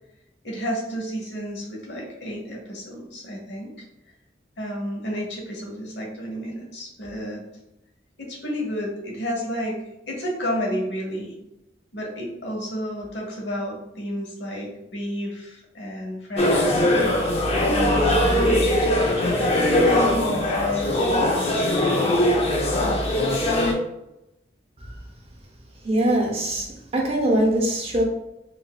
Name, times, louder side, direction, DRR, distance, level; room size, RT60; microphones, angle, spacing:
voice 1, 0.4-3.7 4.6-7.4 8.2-9.8 10.1-11.3 11.9-16.8 17.7-21.1 21.4-22.2, equal, 80° left, -1 dB, 0.9 m, -31 dB
sound 1, 16.4-23.7, left 1 dB, 35° left, 0.5 m, -21 dB
voice 2, 25.8-26.7 26.9-28.0, right 1 dB, 35° right, -1 dB, 0.6 m, -21 dB
3.8 x 2.2 x 2.3 m, 0.87 s
head